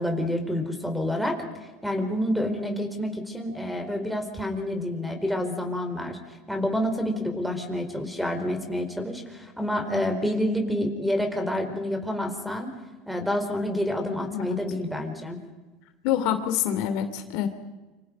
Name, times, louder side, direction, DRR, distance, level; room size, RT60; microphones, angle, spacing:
voice 1, 0.0-1.4 1.8-6.2 6.5-12.7 13.1-15.4, left 1 dB, ahead, 6 dB, 4.6 m, -28 dB
voice 2, 16.0-17.5, left 10 dB, 70° left, 8 dB, 2.9 m, -26 dB
28.0 x 27.0 x 5.4 m, 1.2 s
supercardioid pair, 125°, 0 cm